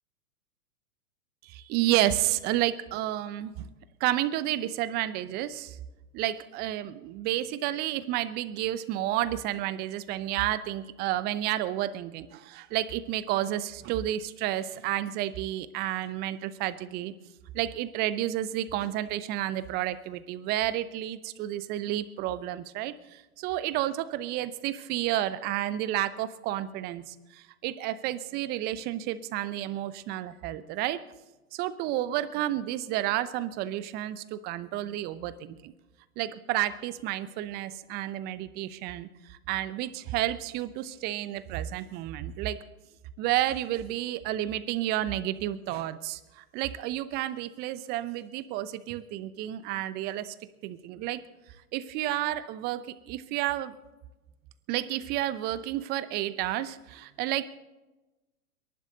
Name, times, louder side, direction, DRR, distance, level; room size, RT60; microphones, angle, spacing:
voice 1, 1.4-3.7 4.0-5.8 6.1-17.1 17.5-31.0 31.5-35.7 36.2-42.6 43.2-50.3 50.6-51.2 51.7-53.7 54.7-57.4, right 13 dB, 20° right, 15 dB, 0.7 m, -31 dB
29.0 x 11.5 x 4.0 m, 1.1 s
figure-of-eight pair, 110°, 44 cm